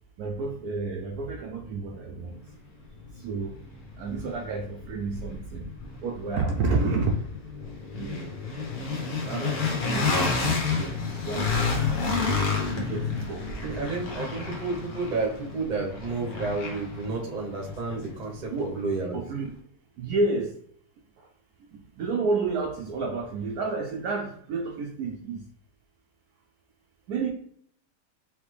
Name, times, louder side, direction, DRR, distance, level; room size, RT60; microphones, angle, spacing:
voice 1, 0.2-2.4 3.2-3.6 4.0-5.7 6.0-7.2 7.9-8.4 8.9-9.6 9.8-11.9 12.7-13.4 18.5-18.7 19.1-19.5 20.0-20.6 22.0-25.4 27.1-27.3, right 3 dB, 70° right, 2 dB, 1.0 m, -30 dB
sound 1, 2.5-2.6 3.0-19.0, left 4 dB, 65° left, 1.4 m, -31 dB
voice 2, 13.6-19.2, right 3 dB, 35° right, 0 dB, 0.9 m, -31 dB
4.1 x 3.3 x 3.2 m, 0.64 s
omnidirectional pair, 1.8 m